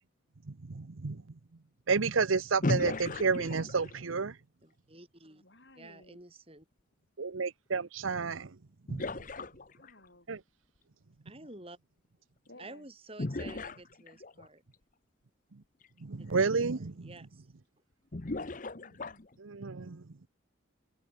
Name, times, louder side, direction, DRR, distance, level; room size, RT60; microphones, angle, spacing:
voice 1, 0.7-1.2 1.9-4.4 7.2-8.5 8.9-9.0 10.3-10.4 16.0-16.9 19.4-20.0, right 4 dB, 90° right, 0.8 m, -30 dB
sound 1, 2.6-4.1 8.0-8.1 8.9-10.1 13.2-14.5 15.8-15.9 16.4-16.5 18.1-19.4, left 2 dB, 40° left, 0.9 m, -36 dB
voice 2, 4.6-5.4 5.7-6.7 11.2-11.8 12.6-14.6 16.2-17.5, right 2 dB, 30° right, 7.7 m, -51 dB
voice 3, 5.3-6.2 9.7-10.3 12.5-12.8 18.6-19.2, left 1 dB, 60° left, 6.1 m, -56 dB
head